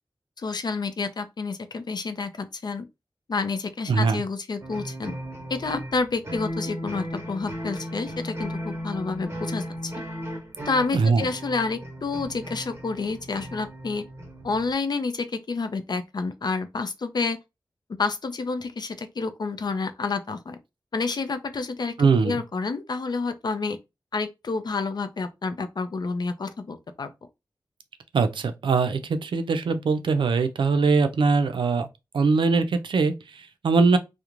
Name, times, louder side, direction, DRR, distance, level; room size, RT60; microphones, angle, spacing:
voice 1, 0.4-2.9 3.3-5.1 5.5-9.9 10.7-14.0 14.4-17.4 18.0-20.6 20.9-21.9 22.2-23.8 24.1-27.1, left 4 dB, 60° left, 0.4 m, -29 dB
voice 2, 3.9-4.2 10.9-11.3 22.0-22.4 28.1-31.9 32.1-34.0, right 4 dB, 90° right, 0.4 m, -22 dB
sound 1, 4.6-14.7, equal, 35° right, 1.0 m, -36 dB
2.4 x 2.1 x 3.0 m
wide cardioid pair, 65°, 8 cm